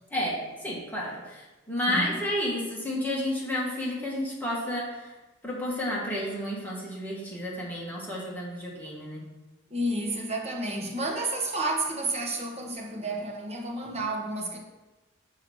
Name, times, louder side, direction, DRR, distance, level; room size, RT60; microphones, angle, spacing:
voice 1, 0.1-5.1 5.4-9.2, left 1 dB, 10° left, -4 dB, 1.7 m, -31 dB
voice 2, 1.9-2.2 9.7-14.6, right 2 dB, 35° right, 0 dB, 1.3 m, -31 dB
6.4 x 4.8 x 6.3 m, 1.1 s
head